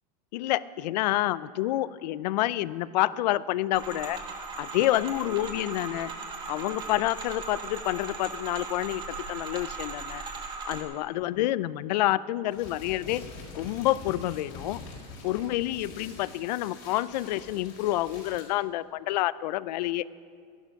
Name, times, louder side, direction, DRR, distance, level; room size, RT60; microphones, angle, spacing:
voice 1, 0.3-4.2 4.6-6.1 6.5-10.2 10.7-13.2 13.5-14.8 15.2-20.0, left 15 dB, 85° left, 18 dB, 0.5 m, -28 dB
sound 1, 3.7-10.8, right 4 dB, 25° right, 1.6 m, -38 dB
sound 2, 12.5-18.4, left 4 dB, 55° left, 4.5 m, -45 dB
14.0 x 11.5 x 5.8 m, 2.1 s
supercardioid pair, 165°, 21 cm